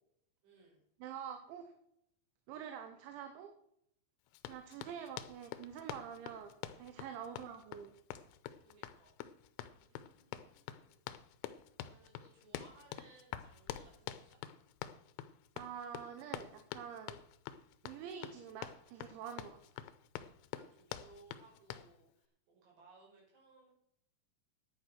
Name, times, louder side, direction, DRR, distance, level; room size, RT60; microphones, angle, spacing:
voice 1, 0.4-0.8 7.2-7.3 8.6-9.1 9.7-11.0 11.8-14.4 20.5-23.7, right 3 dB, 60° right, -4 dB, 7.4 m, -63 dB
voice 2, 1.0-1.7 2.5-3.5 4.5-7.9 15.6-17.2 17.8-19.9, right 8 dB, 80° right, 7 dB, 3.4 m, -47 dB
Run, 4.3-21.9, left 10 dB, 85° left, 3.2 m, -48 dB
10.5 x 9.3 x 6.3 m, 0.74 s
omnidirectional pair, 5.4 m